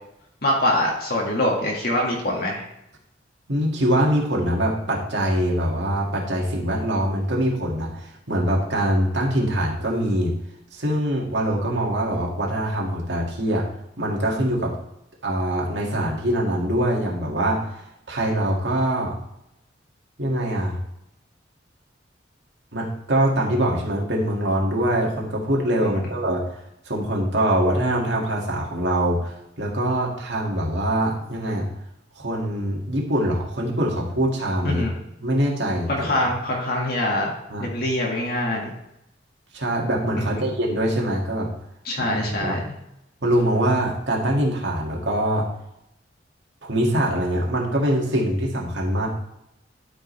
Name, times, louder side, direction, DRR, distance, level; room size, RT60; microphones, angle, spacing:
voice 1, 0.4-2.7 34.6-34.9 35.9-37.3 37.6-38.7 40.1-40.4 41.9-42.6, left 1 dB, 55° left, -2 dB, 1.7 m, -24 dB
voice 2, 3.5-10.3 10.7-13.6 14.0-14.7 15.2-17.8 18.1-19.2 20.2-20.8 22.7-26.5 26.9-31.7 32.2-34.8 35.2-36.3 37.5-37.7 39.5-41.5 42.0-42.6 43.2-45.5 46.6-49.1, right 1 dB, 70° right, -2 dB, 2.1 m, -23 dB
12.5 x 5.1 x 3.3 m, 0.83 s
head